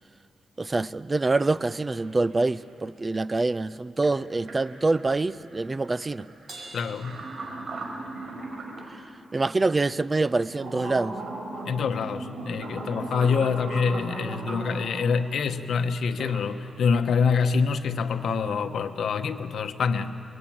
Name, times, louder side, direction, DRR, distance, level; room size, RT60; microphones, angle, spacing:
voice 1, 0.6-6.3 8.9-9.0 9.3-11.2 13.2-13.3, right 3 dB, 25° right, 17 dB, 0.6 m, -25 dB
sound 1, 1.6-2.4 4.0-4.1 4.4-8.9 9.5-9.6 10.2-15.1 15.9-16.4 16.8-17.1, right 2 dB, 70° right, 4.8 m, -37 dB
Crash cymbal, 6.5-8.2, right 2 dB, 50° right, 5.7 m, -46 dB
voice 2, 6.7-7.2 11.6-20.2, left 5 dB, 80° left, 7 dB, 1.1 m, -26 dB
28.0 x 22.0 x 8.7 m, 2.6 s
cardioid pair, 95°, 0 cm